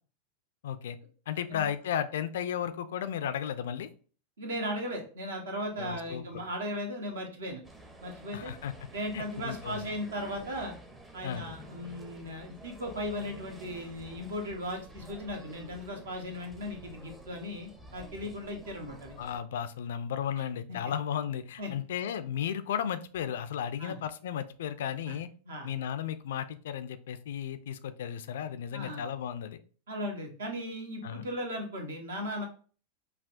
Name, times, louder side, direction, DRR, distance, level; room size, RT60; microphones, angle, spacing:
voice 1, 0.6-1.0 1.3-3.9 5.8-6.3 8.3-8.7 9.1-9.9 11.2-11.5 19.2-25.3 25.6-29.6 31.0-31.3, left 9 dB, 60° left, 11 dB, 0.3 m, -34 dB
voice 2, 4.4-7.6 8.0-8.5 8.9-10.7 11.1-19.2 20.7-20.8 21.6-21.7 23.8-24.0 25.1-25.2 25.4-25.7 28.7-29.0 29.9-32.5, equal, 65° right, 3 dB, 1.0 m, -37 dB
sound 1, 7.6-19.4, right 1 dB, 10° right, 0.6 m, -50 dB
5.6 x 2.3 x 2.5 m, 0.40 s
figure-of-eight pair, 90°, 0 cm